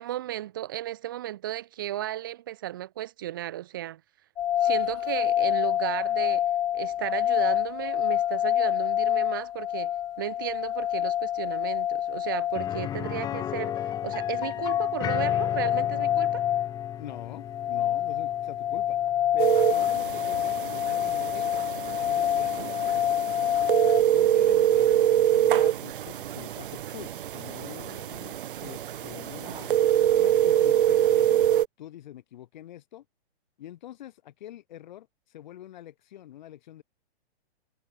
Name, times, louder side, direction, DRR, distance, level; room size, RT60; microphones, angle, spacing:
voice 1, 0.0-4.0 4.6-6.5 6.7-9.9 10.2-16.4, right 13 dB, 20° right, 0.5 m, -34 dB
sound 1, 4.4-24.0, left 11 dB, 60° left, 0.7 m, -27 dB
sound 2, 12.5-22.3 22.6-22.7 25.2-25.3, left 10 dB, 10° left, 2.1 m, -38 dB
voice 2, 17.0-19.0 19.3-21.5 22.0-23.2 24.1-29.7 30.2-31.3 31.8-33.0 33.6-36.8, left 12 dB, 45° left, 2.1 m, -45 dB
sound 3, 19.4-31.7, right 11 dB, 50° right, 0.8 m, -25 dB
hypercardioid pair, 170°, 33 cm